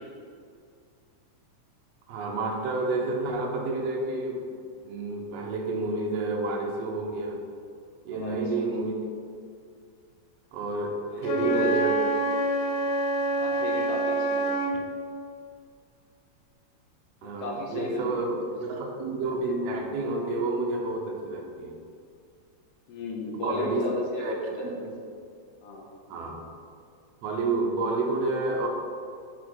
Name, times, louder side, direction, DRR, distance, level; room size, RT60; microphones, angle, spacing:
voice 1, 2.1-4.4 4.8-7.4 8.0-8.9 10.5-11.9 17.2-21.8 23.4-23.9 24.2-24.3 24.6-24.9 26.1-26.5 27.2-28.7, right 2 dB, 70° right, 1 dB, 1.7 m, -29 dB
voice 2, 8.1-8.6 11.1-12.1 13.3-14.5 17.2-18.2 22.9-24.7 25.6-25.9, left 2 dB, 70° left, -2 dB, 1.5 m, -35 dB
Wind instrument woodwind instrument, 11.2-14.8, right 2 dB, 90° left, 2.2 m, -26 dB
6.2 x 4.9 x 4.7 m, 2.3 s
omnidirectional pair, 3.7 m